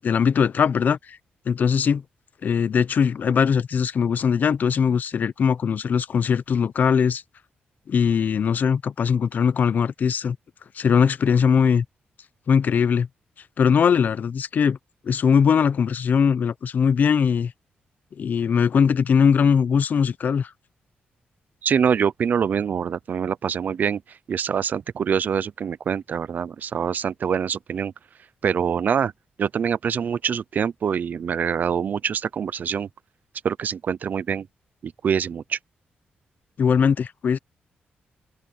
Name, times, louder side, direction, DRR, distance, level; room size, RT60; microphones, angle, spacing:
voice 1, 0.0-1.2 1.5-2.0 2.4-7.2 7.9-10.4 10.7-11.8 12.5-13.1 13.6-14.8 15.0-17.5 18.2-20.5 36.6-37.4, left 6 dB, 55° left, 0.8 m, -20 dB
voice 2, 21.6-24.0 24.3-27.9 28.4-29.1 29.4-32.9 33.4-34.5 34.8-35.6, right 7 dB, 55° right, 0.5 m, -25 dB
open air
cardioid pair, 115°, 4 cm